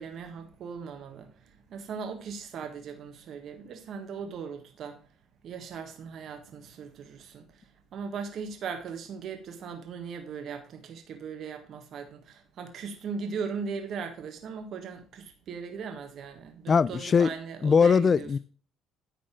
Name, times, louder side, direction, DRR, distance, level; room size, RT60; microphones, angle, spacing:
voice 1, 0.0-1.3 1.7-5.0 5.4-7.6 7.9-18.3, right 6 dB, 60° right, 1.5 m, -38 dB
voice 2, 16.7-17.3 17.6-18.4, left 6 dB, 40° left, 0.3 m, -21 dB
10.5 x 4.2 x 6.1 m
supercardioid pair, 75°, 0 cm